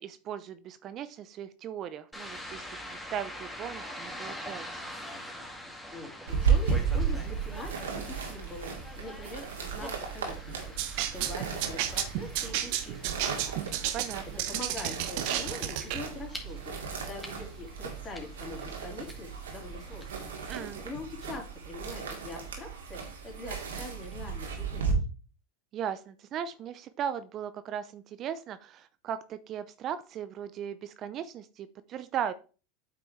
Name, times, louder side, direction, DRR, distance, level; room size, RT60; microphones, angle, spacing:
voice 1, 0.0-4.8 13.9-14.4 20.5-20.8 25.7-32.3, right 9 dB, 40° right, 13 dB, 0.6 m, -37 dB
sound 1, 2.1-20.7, equal, 5° left, 2.1 m, -45 dB
voice 2, 5.6-10.6 11.1-13.6 14.5-20.2 20.8-25.0, left 2 dB, 30° left, 1 dB, 3.2 m, -43 dB
sound 2, 6.3-24.9, right 6 dB, 80° right, 2.1 m, -35 dB
sound 3, 10.8-16.1, right 12 dB, 60° right, 0.9 m, -32 dB
8.6 x 5.8 x 3.2 m, 0.35 s
hypercardioid pair, 90°, 0 cm